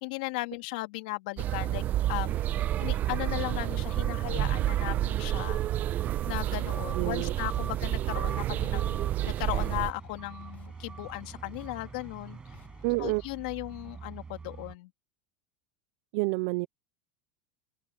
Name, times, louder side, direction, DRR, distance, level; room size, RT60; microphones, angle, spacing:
voice 1, 0.0-1.8 2.1-2.4 2.8-5.6 6.3-9.0 9.2-12.4 13.0-14.9, left 23 dB, 70° left, 2.6 m, -36 dB
sound 1, 1.4-9.9, right 13 dB, 40° right, 0.9 m, -29 dB
sound 2, 2.1-14.7, right 5 dB, 20° right, 7.3 m, -46 dB
voice 2, 6.9-7.3 12.8-13.2 16.1-16.7, right 26 dB, 65° right, 0.5 m, -28 dB
sound 3, 7.2-13.1, left 9 dB, 35° left, 5.3 m, -56 dB
open air
supercardioid pair, 120°, 4 cm